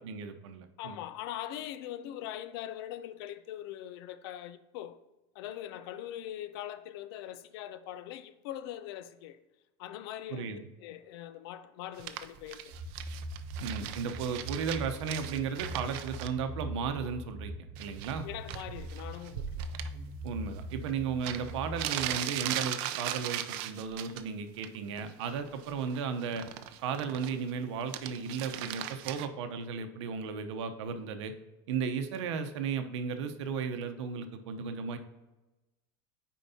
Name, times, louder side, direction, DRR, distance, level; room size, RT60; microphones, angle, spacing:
voice 1, 0.0-1.0 10.3-10.7 13.6-18.3 20.2-26.5 26.8-31.3 31.7-35.0, right 6 dB, 90° right, 0.8 m, -35 dB
voice 2, 0.8-5.0 5.3-9.4 9.8-12.8 18.2-19.6 19.9-20.0, left 12 dB, 60° left, 0.5 m, -42 dB
sound 1, 12.0-16.3 17.8-18.2 18.5-19.9 20.9-21.0 21.2-24.2 24.6-25.0 25.3-27.5 27.8-29.3, right 12 dB, 50° right, 0.5 m, -38 dB
sound 2, 12.7-22.1, right 1 dB, 20° right, 1.0 m, -42 dB
9.0 x 4.6 x 2.8 m
supercardioid pair, 170°, 15 cm